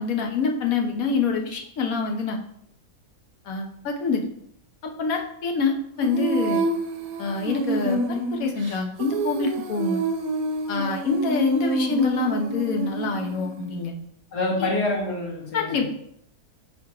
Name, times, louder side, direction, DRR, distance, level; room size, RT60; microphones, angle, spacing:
voice 1, 0.0-2.4 3.5-4.2 4.8-6.6 7.2-10.0 10.7-13.9 14.6-14.7 15.5-15.8, left 4 dB, 65° left, 3 dB, 1.3 m, -26 dB
Female singing, 6.0-13.7, right 2 dB, 65° right, 1.1 m, -28 dB
voice 2, 14.3-15.8, left 2 dB, 90° left, -3 dB, 2.2 m, -26 dB
4.8 x 4.4 x 4.7 m, 0.69 s
omnidirectional pair, 1.7 m